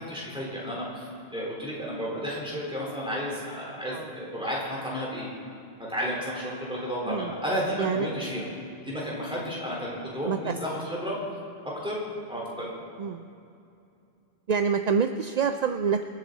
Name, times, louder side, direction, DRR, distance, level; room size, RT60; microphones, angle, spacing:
voice 1, 0.0-5.3 5.9-8.4 8.8-11.2 11.6-12.0 12.3-12.7, equal, 5° right, -5 dB, 4.1 m, -32 dB
voice 2, 14.5-16.0, right 6 dB, 50° right, 7 dB, 0.5 m, -26 dB
26.0 x 9.1 x 4.1 m, 2.6 s
omnidirectional pair, 1.1 m